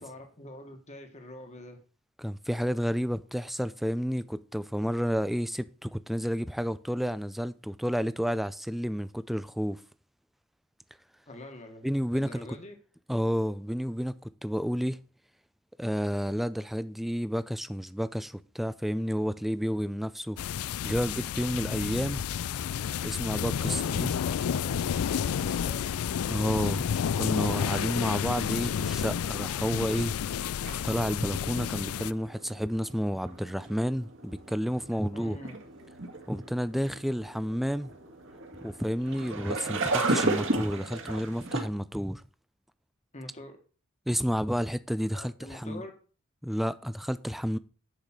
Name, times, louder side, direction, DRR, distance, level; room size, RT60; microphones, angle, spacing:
voice 1, 0.0-1.8 11.3-12.8 23.6-25.9 35.1-35.6 43.1-43.6 45.1-45.9, left 1 dB, 35° left, 1.7 m, -45 dB
voice 2, 2.2-9.8 11.8-12.5 13.1-15.0 15.8-20.4 20.8-22.2 23.0-24.1 26.3-26.9 27.2-30.2 30.8-35.4 36.3-37.9 38.6-42.2 44.1-45.8 46.4-47.6, equal, ahead, 0.5 m, -30 dB
sound 1, 20.4-32.1, left 8 dB, 85° left, 0.4 m, -30 dB
sound 2, 30.7-41.6, right 2 dB, 60° right, 2.1 m, -35 dB
10.5 x 5.2 x 7.5 m
head